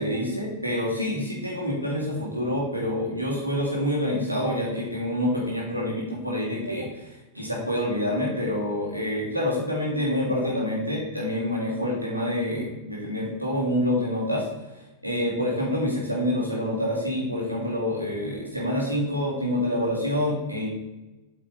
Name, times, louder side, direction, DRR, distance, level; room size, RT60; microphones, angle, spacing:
voice 1, 0.0-20.7, left 1 dB, 85° right, -4 dB, 2.7 m, -27 dB
8.4 x 5.4 x 3.9 m, 1.0 s
figure-of-eight pair, 90°, 0 cm